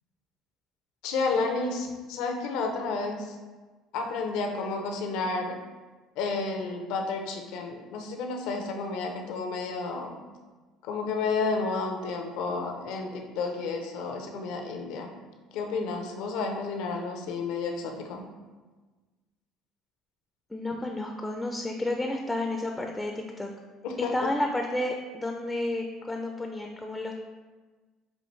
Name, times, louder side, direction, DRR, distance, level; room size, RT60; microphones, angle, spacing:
voice 1, 1.0-3.4 3.9-5.6 6.2-10.2 10.8-15.1 15.5-18.3 23.8-24.2, left 4 dB, 75° left, 3 dB, 0.6 m, -31 dB
voice 2, 20.5-23.5 24.1-27.2, left 1 dB, 10° left, 2 dB, 0.4 m, -31 dB
5.4 x 2.5 x 3.1 m, 1.3 s
supercardioid pair, 90°, 0 cm